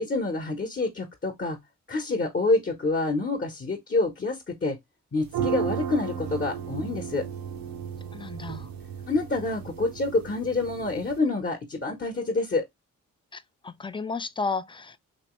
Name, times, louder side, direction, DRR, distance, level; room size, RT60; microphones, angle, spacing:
voice 1, 0.0-1.6 1.9-4.8 5.1-7.2 9.1-12.6, left 3 dB, 35° left, 1.0 m, -27 dB
sound 1, 5.2-11.2, right 7 dB, 90° right, 0.8 m, -34 dB
voice 2, 8.1-8.7 13.3-15.0, left 4 dB, 15° left, 0.4 m, -33 dB
3.0 x 2.9 x 3.0 m
supercardioid pair, 50°, 33 cm